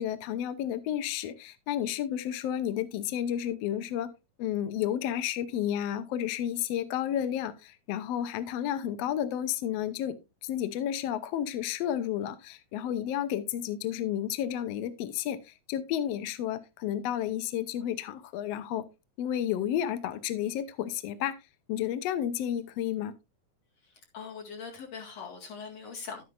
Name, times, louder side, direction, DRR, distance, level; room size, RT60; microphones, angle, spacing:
voice 1, 0.0-4.1 4.4-10.2 10.4-18.9 19.2-21.4 21.7-23.1, left 10 dB, 70° left, 12 dB, 1.6 m, -31 dB
voice 2, 23.8-26.2, left 5 dB, 55° left, 0 dB, 3.0 m, -42 dB
11.5 x 9.5 x 2.6 m, 0.25 s
omnidirectional pair, 3.7 m